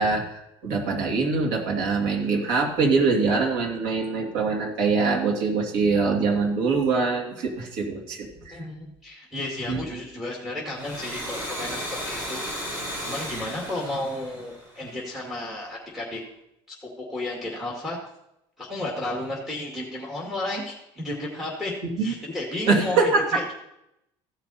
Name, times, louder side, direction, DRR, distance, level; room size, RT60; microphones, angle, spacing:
voice 1, 0.0-8.6 9.7-10.0 22.0-22.1 22.7-23.4, right 4 dB, 85° right, 0 dB, 2.6 m, -24 dB
voice 2, 8.5-12.6 13.0-16.2 16.8-18.0 18.6-23.5, left 1 dB, ahead, -3 dB, 2.2 m, -33 dB
Domestic sounds home sounds, 10.7-15.2, equal, 20° right, 4.0 m, -34 dB
15.0 x 5.9 x 4.3 m, 0.82 s
cardioid pair, 115°, 12 cm